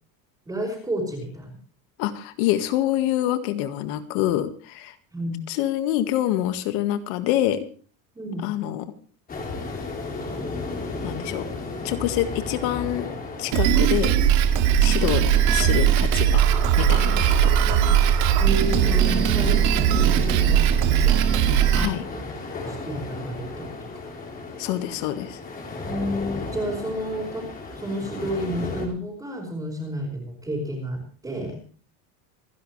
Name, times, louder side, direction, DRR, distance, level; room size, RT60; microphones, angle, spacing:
voice 1, 0.5-1.6 5.1-5.4 8.1-8.5 17.4-18.0 18.4-21.2 21.7-22.2 22.7-23.7 25.8-27.5 27.8-31.6, equal, 10° right, -4 dB, 5.3 m, -31 dB
voice 2, 2.0-4.9 5.5-7.7 8.4-8.9 11.0-11.5 11.8-13.1 13.4-14.2 14.8-16.4 16.8-17.5 21.7-22.0 24.6-25.4, left 13 dB, 70° left, 9 dB, 1.9 m, -26 dB
sound 1, 9.3-28.9, left 3 dB, 20° left, 3.9 m, -35 dB
Drum kit, 13.5-21.9, right 9 dB, 70° right, 2.3 m, -19 dB
27.5 x 11.0 x 3.3 m, 0.40 s
cardioid pair, 175°, 44 cm